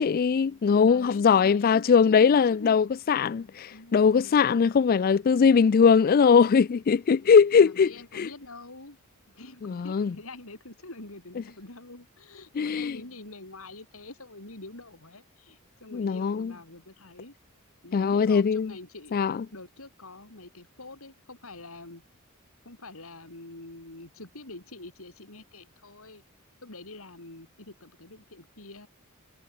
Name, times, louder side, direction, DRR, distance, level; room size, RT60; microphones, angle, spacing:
voice 1, 0.0-8.3 9.6-10.1 12.6-13.0 15.9-16.5 17.9-18.7 19.1-19.4, left 6 dB, 40° left, 0.3 m, -21 dB
voice 2, 0.7-2.9 3.7-4.4 7.6-9.0 9.3-17.3 17.8-19.1 19.5-22.0 22.6-26.2 26.6-28.9, left 2 dB, 70° left, 4.3 m, -45 dB
head